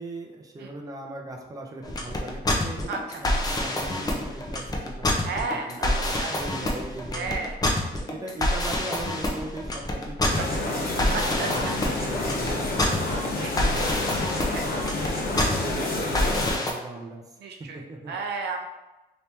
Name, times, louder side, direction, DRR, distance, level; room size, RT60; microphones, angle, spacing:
voice 1, 0.0-7.4 7.9-13.9 14.4-17.2 17.7-18.1, right 2 dB, 20° right, 1 dB, 0.6 m, -39 dB
sound 1, 1.8-16.7, left 1 dB, 20° left, 0.6 m, -27 dB
voice 2, 2.9-3.2 5.2-6.4 7.1-7.6 10.3-10.5 11.1-11.7 12.3-12.4 13.4-13.5 14.5-14.7 17.4-18.6, right 4 dB, 70° right, 3 dB, 0.5 m, -33 dB
sound 2, 10.3-16.6, left 2 dB, 55° left, 0.8 m, -29 dB
2.9 x 2.8 x 3.4 m, 1.0 s
cardioid pair, 100°, 18 cm